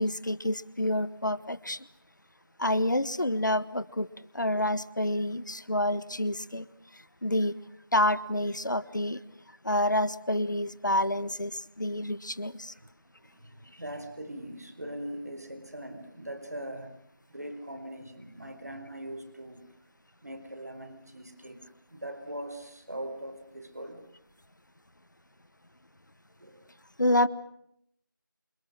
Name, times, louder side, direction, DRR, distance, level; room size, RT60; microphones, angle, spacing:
voice 1, 0.0-1.9 2.6-4.1 4.3-6.7 6.9-7.6 7.9-9.2 9.6-12.7 27.0-27.3, left 1 dB, 60° left, 16 dB, 1.5 m, -28 dB
voice 2, 13.2-17.0 17.3-19.6 20.2-21.6 21.9-24.0 26.4-26.6, right 1 dB, 50° right, 8 dB, 4.6 m, -41 dB
28.0 x 27.5 x 6.4 m, 0.73 s
figure-of-eight pair, 175°, 11 cm